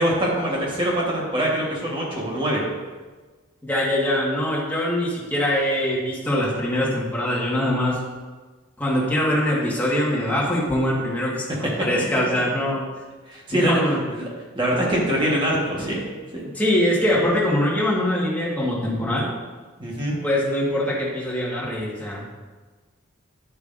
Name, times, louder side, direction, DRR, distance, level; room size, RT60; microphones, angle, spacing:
voice 1, 0.0-2.6 13.3-13.8 14.1-14.3 14.5-16.0 16.3-16.4 19.8-20.2, right 1 dB, 25° right, -4 dB, 1.4 m, -23 dB
voice 2, 3.6-8.0 8.8-12.9 13.5-14.0 16.5-19.3 20.2-22.3, left 1 dB, 10° left, -5 dB, 1.6 m, -23 dB
10.5 x 7.9 x 2.6 m, 1.3 s
head